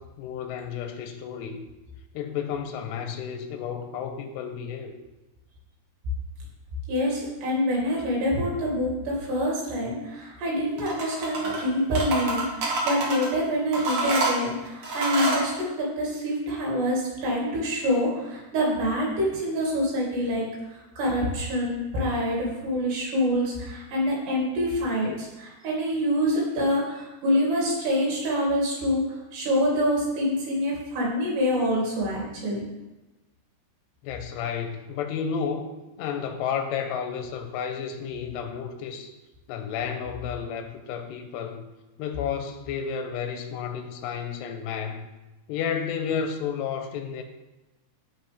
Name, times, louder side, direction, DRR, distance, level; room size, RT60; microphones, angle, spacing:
voice 1, 0.0-1.6 2.1-4.9 34.0-39.1 39.5-41.6 42.0-45.1 45.5-47.2, left 7 dB, 85° left, 6 dB, 2.8 m, -32 dB
voice 2, 6.9-20.4 20.7-32.7, equal, 75° right, -4 dB, 4.6 m, -26 dB
sound 1, 10.8-11.6 11.9-13.3 13.7-15.5, right 2 dB, 55° right, 1.8 m, -27 dB
14.5 x 5.0 x 3.5 m, 1.1 s
omnidirectional pair, 5.0 m